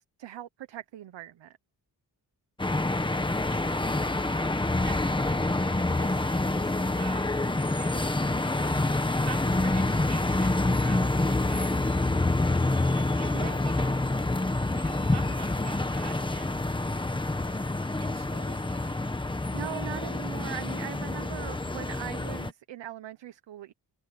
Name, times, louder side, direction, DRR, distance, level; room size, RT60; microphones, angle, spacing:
voice 1, 0.0-1.6 13.3-13.6 19.5-23.7, right 11 dB, 90° right, 1.0 m, -40 dB
sound 1, 2.6-22.5, left 2 dB, 10° left, 1.2 m, -27 dB
voice 2, 3.5-3.9 4.8-8.2 8.6-12.0 13.0-14.0 14.7-16.7 17.4-17.6 18.0-19.1, right 8 dB, 70° right, 4.3 m, -48 dB
wide cardioid pair, 155°, 43 cm